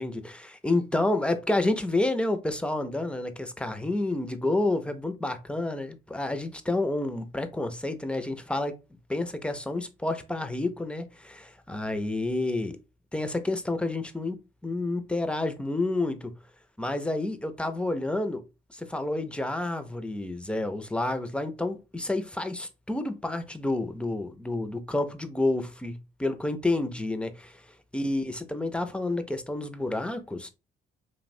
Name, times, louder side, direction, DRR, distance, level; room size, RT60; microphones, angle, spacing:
voice 1, 0.0-8.7 9.1-12.8 13.1-16.3 16.8-18.4 18.7-27.6 27.9-30.5, left 2 dB, 5° left, 0.4 m, -29 dB
2.9 x 2.1 x 2.5 m
cardioid pair, 90°, 20 cm